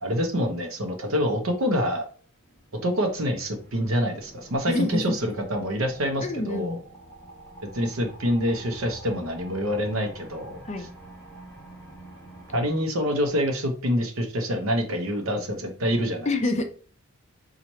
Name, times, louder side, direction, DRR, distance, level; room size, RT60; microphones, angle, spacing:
voice 1, 0.0-2.1 2.8-6.8 7.7-10.9 12.5-16.3, equal, 80° right, 4 dB, 0.8 m, -26 dB
sound 1, 2.2-12.8, right 1 dB, 10° left, 1.1 m, -47 dB
voice 2, 4.7-5.0 6.2-6.8 10.7-10.9 16.3-16.6, left 2 dB, 35° left, 6 dB, 0.5 m, -26 dB
3.0 x 2.4 x 4.1 m, 0.42 s
head